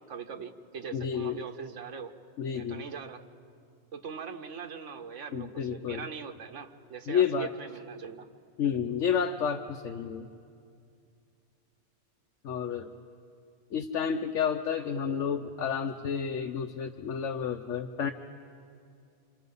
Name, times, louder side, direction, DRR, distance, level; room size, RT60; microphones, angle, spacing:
voice 1, 0.0-2.1 2.5-3.2 3.9-8.3 15.0-15.3, right 6 dB, 90° right, 6 dB, 1.3 m, -41 dB
voice 2, 0.9-1.4 2.4-2.9 5.3-6.1 7.1-7.5 8.6-10.3 12.4-12.9 13.7-18.1, left 7 dB, 90° left, 5 dB, 1.1 m, -30 dB
27.0 x 26.5 x 5.5 m, 2.4 s
omnidirectional pair, 1.2 m